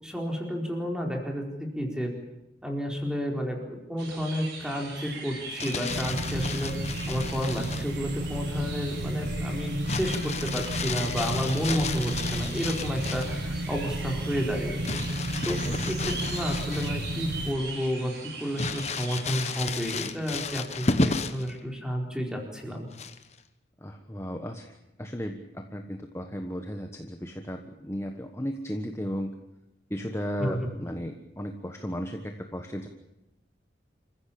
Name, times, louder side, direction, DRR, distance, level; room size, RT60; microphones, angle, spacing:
voice 1, 0.0-2.1 2.6-3.6 3.9-6.7 7.1-15.0 15.4-18.1 18.4-22.9 30.4-30.6, equal, 5° right, 1 dB, 4.4 m, -31 dB
sound 1, 4.0-20.0, right 3 dB, 70° right, 6.0 m, -41 dB
Crumpling crinkling, 5.4-7.9 9.8-13.4 14.8-17.2 17.6-17.7 18.6-21.5 22.9-23.4, left 3 dB, 35° left, 1.2 m, -32 dB
sound 2, 5.9-17.5, right 1 dB, 90° right, 1.5 m, -33 dB
voice 2, 23.8-29.3 29.9-32.9, equal, 15° left, 5 dB, 1.3 m, -35 dB
27.5 x 15.0 x 8.8 m, 0.97 s
head